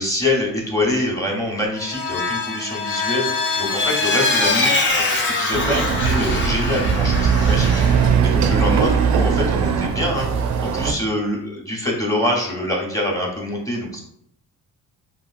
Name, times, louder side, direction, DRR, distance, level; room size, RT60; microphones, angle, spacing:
voice 1, 0.0-4.8 5.1-7.8 8.2-14.0, left 1 dB, 10° left, -2 dB, 1.0 m, -25 dB
Vehicle, 1.8-8.1, left 3 dB, 40° left, 0.6 m, -23 dB
Chatter / Car passing by / Motorcycle, 5.5-10.9, right 6 dB, 70° right, 0.5 m, -19 dB
2.9 x 2.5 x 2.5 m, 0.69 s
cardioid pair, 90°, 30 cm